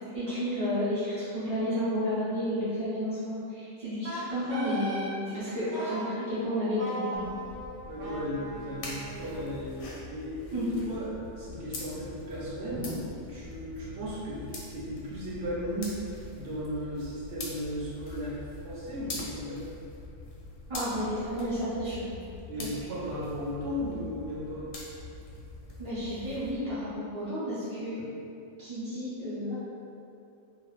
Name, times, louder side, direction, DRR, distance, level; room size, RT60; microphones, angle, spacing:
voice 1, 0.1-7.3 10.5-10.8 12.7-12.9 20.7-22.1 22.6-22.7 25.8-28.0 28.6-29.5, equal, 30° right, -15 dB, 0.6 m, -31 dB
Wind instrument woodwind instrument, 4.0-5.1 5.7-6.2 6.8-9.8, right 1 dB, 90° right, 1.1 m, -38 dB
sound 1, 7.1-26.6, left 2 dB, 85° left, 0.9 m, -44 dB
voice 2, 7.9-12.8 13.3-16.0 16.3-19.7 22.5-24.6, equal, 65° right, -6 dB, 0.9 m, -36 dB
2.3 x 2.0 x 3.0 m, 2.7 s
omnidirectional pair, 1.3 m